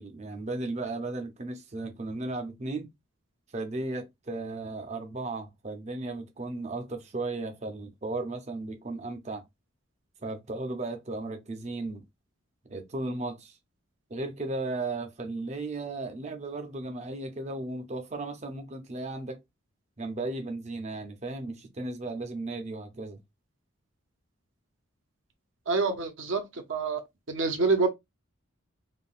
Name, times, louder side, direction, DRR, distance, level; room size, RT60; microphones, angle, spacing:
voice 1, 0.0-2.9 3.5-9.4 10.2-12.0 12.7-13.6 14.1-19.4 20.0-23.2, right 2 dB, 35° right, 0.6 m, -35 dB
voice 2, 25.7-27.0 27.3-27.9, right 4 dB, 70° right, 0.8 m, -27 dB
3.6 x 2.3 x 2.4 m
head